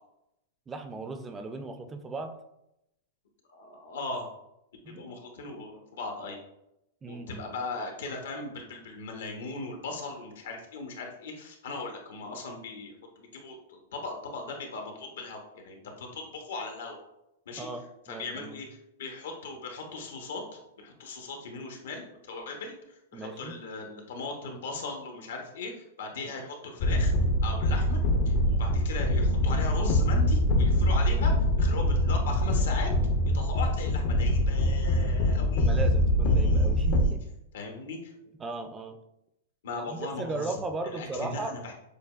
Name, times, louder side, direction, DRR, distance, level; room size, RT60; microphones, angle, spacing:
voice 1, 0.7-2.3 4.8-5.2 7.0-7.6 17.6-18.6 23.1-23.5 26.4-26.5 35.6-37.2 38.4-39.0 39.9-41.5, right 3 dB, 15° right, 7 dB, 0.4 m, -37 dB
voice 2, 3.5-4.3 4.9-6.4 7.1-17.0 17.5-17.7 18.1-18.7 19.0-27.1 27.4-32.9 33.3-35.8 36.2-37.1 37.5-38.3 39.6-41.7, left 3 dB, 80° left, 2 dB, 1.0 m, -39 dB
sound 1, 26.8-37.1, left 1 dB, 50° left, 0.5 m, -24 dB
6.6 x 2.2 x 2.4 m, 0.84 s
hypercardioid pair, 135°, 0 cm